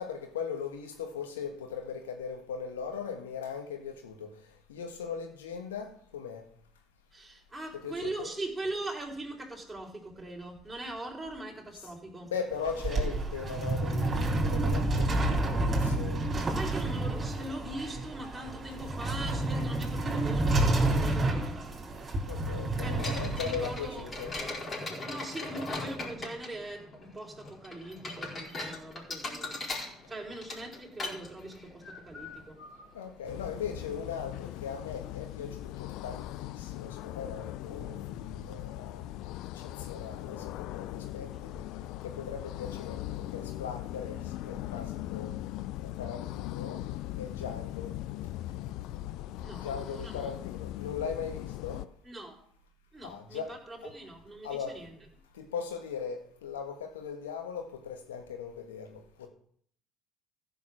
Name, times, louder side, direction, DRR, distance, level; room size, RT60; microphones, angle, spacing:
voice 1, 0.0-4.3 4.7-6.4 7.7-8.3 12.3-16.2 22.3-24.3 32.9-39.0 39.5-41.5 42.0-45.3 45.8-46.8 47.2-47.9 49.5-51.8 53.0-53.5 53.8-53.9 54.4-54.8 55.3-59.3, left 6 dB, 80° left, 5 dB, 1.6 m, -39 dB
voice 2, 7.1-12.3 16.1-21.6 22.8-24.1 25.0-29.6 30.1-32.6 49.4-50.3 52.0-52.4 52.9-54.9, right 1 dB, 15° right, 0 dB, 4.0 m, -41 dB
sound 1, 12.5-24.4, right 2 dB, 30° right, 3.3 m, -29 dB
sound 2, 23.0-33.9, left 2 dB, 35° left, 4.7 m, -40 dB
sound 3, 33.2-51.9, left 15 dB, 65° left, 0.4 m, -39 dB
15.0 x 5.6 x 6.5 m, 0.62 s
hypercardioid pair, 60°, 0 cm